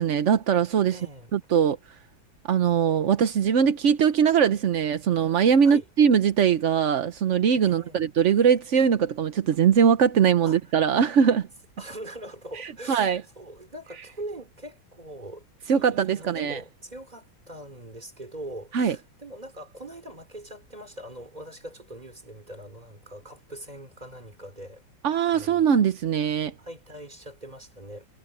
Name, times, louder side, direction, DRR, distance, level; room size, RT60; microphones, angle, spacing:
voice 1, 0.0-1.0 1.3-1.8 2.4-11.5 12.6-13.2 15.7-16.6 18.7-19.0 25.0-26.5, right 7 dB, 55° right, 0.8 m, -21 dB
voice 2, 0.9-1.3 5.6-5.9 7.7-8.0 10.4-10.6 11.8-24.8 25.2-25.7 26.6-28.1, right 1 dB, 20° right, 4.2 m, -42 dB
omnidirectional pair, 2.2 m